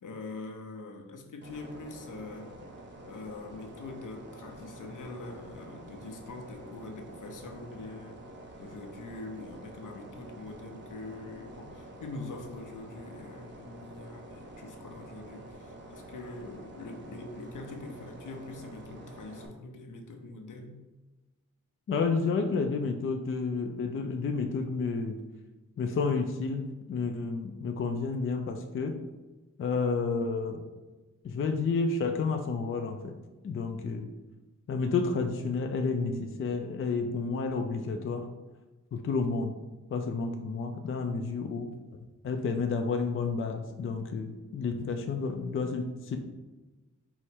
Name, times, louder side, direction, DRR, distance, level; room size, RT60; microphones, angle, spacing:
voice 1, 0.0-2.6 3.1-8.2 8.6-20.8, left 3 dB, 85° left, 3 dB, 0.6 m, -43 dB
sound 1, 1.4-19.5, right 1 dB, 35° right, 0.6 m, -48 dB
voice 2, 21.9-25.2 25.8-29.0 29.6-30.7 31.2-33.2 33.4-34.1 34.7-38.3 38.9-39.6 39.9-41.7 42.2-46.2, left 4 dB, 45° left, 5 dB, 0.4 m, -30 dB
4.7 x 2.0 x 4.3 m, 1.1 s
wide cardioid pair, 115°, 31 cm